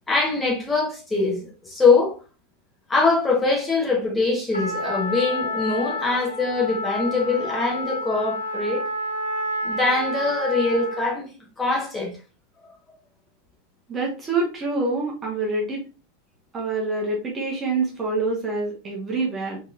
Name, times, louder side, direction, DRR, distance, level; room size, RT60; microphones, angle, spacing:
voice 1, 0.1-2.2 2.9-8.8 9.6-11.3 11.6-12.1, left 3 dB, 10° left, 1.5 m, -23 dB
Trumpet, 4.5-11.1, left 1 dB, 85° left, 1.0 m, -29 dB
voice 2, 13.9-15.8 16.5-19.6, right 3 dB, 20° right, 1.3 m, -26 dB
4.2 x 3.4 x 2.6 m
figure-of-eight pair, 90°, 0 cm